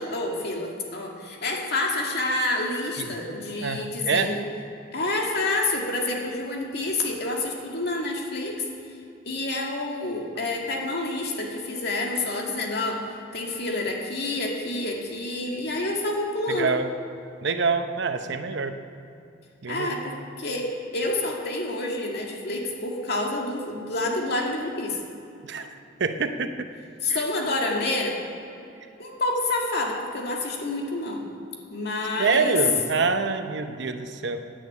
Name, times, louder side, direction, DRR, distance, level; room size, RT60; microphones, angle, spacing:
voice 1, 0.0-4.4 4.9-8.6 9.3-13.0 13.3-16.7 19.7-25.0 27.0-28.2 29.0-31.2 31.7-32.6, left 2 dB, 60° left, -1 dB, 2.2 m, -28 dB
voice 2, 3.6-4.3 16.5-16.9 17.4-18.7 19.6-19.9 25.4-25.7 26.0-26.7 27.1-27.2 32.2-34.4, right 4 dB, 65° right, 7 dB, 0.8 m, -26 dB
10.5 x 9.2 x 8.5 m, 2.7 s
head